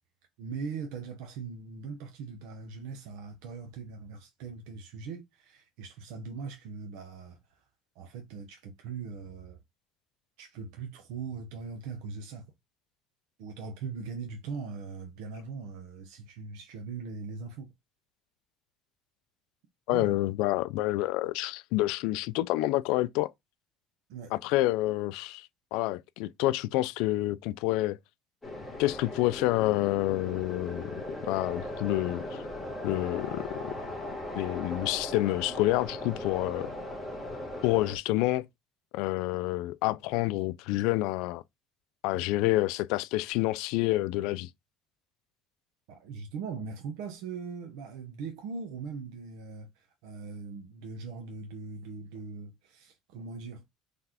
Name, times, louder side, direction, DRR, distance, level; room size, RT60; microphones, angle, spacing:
voice 1, 0.4-7.6 7.9-9.6 10.4-12.5 13.4-17.7 19.9-20.2 24.1-24.4 45.9-53.6, right 5 dB, 80° right, 0.8 m, -40 dB
voice 2, 19.9-23.3 24.3-28.0 28.8-32.4 32.8-33.7 34.4-36.7 37.6-38.5 38.9-41.4 42.0-44.5, left 18 dB, 75° left, 0.3 m, -28 dB
sound 1, 28.4-38.0, left 1 dB, 5° left, 1.4 m, -38 dB
4.0 x 3.2 x 2.8 m
cardioid pair, 160°, 0 cm